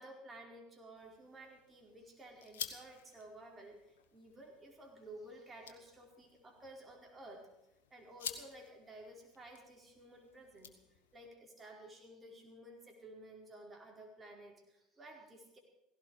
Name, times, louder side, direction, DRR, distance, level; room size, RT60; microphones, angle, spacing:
voice 1, 0.0-7.5 7.9-15.6, right 1 dB, 20° right, 0 dB, 4.8 m, -54 dB
sound 1, 0.9-11.3, left 8 dB, 70° left, 1.4 m, -51 dB
17.0 x 16.5 x 4.9 m, 0.91 s
figure-of-eight pair, 65°, 0 cm